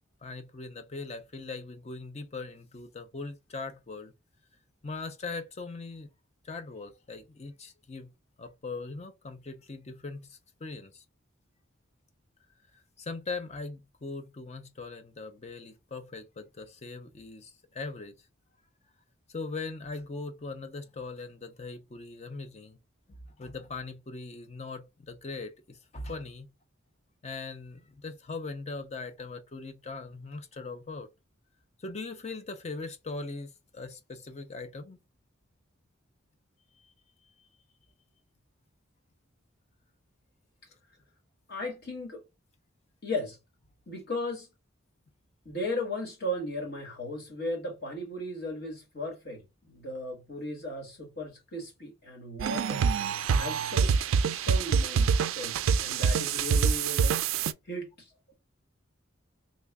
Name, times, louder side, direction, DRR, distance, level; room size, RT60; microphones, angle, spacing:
voice 1, 0.2-4.1 4.8-6.1 6.4-8.1 8.4-11.0 13.0-18.2 19.3-22.8 23.1-26.5 27.2-31.1 31.8-35.0 36.8-36.9 37.4-37.5 54.3-54.4, left 3 dB, 35° left, 0.5 m, -40 dB
voice 2, 41.5-42.2 43.0-43.4 43.9-44.5 45.4-52.9 53.3-57.2 57.7-58.1, left 1 dB, 50° left, 1.5 m, -36 dB
sound 1, 52.4-57.5, right 6 dB, 80° right, 0.3 m, -26 dB
3.1 x 2.4 x 3.5 m
head